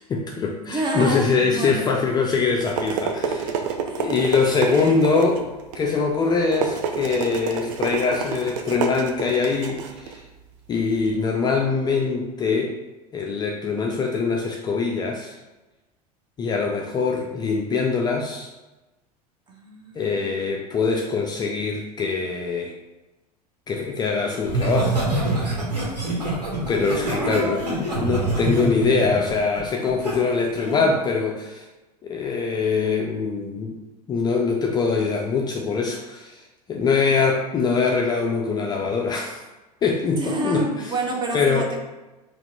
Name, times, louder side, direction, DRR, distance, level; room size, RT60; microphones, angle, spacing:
voice 1, 0.1-3.5 4.0-5.5 5.7-10.2 10.7-12.7 13.1-15.3 16.4-18.5 20.0-22.7 23.7-25.0 26.7-31.6 32.0-33.8 34.1-36.4 36.7-39.4 39.8-40.9 41.3-41.7, left 4 dB, 20° left, 0 dB, 0.4 m, -23 dB
voice 2, 0.6-1.9 2.3-2.5 2.9-3.3 3.9-4.1 4.7-5.0 19.5-20.3 27.1-27.8 40.2-41.8, right 1 dB, 20° right, 1 dB, 0.8 m, -29 dB
sound 1, 2.3-11.2, right 6 dB, 55° right, 0.6 m, -30 dB
Laughter, 24.5-30.1 30.6-30.9, right 2 dB, 80° right, 1.2 m, -25 dB
4.2 x 2.4 x 3.6 m, 1.1 s
figure-of-eight pair, 80°, 20 cm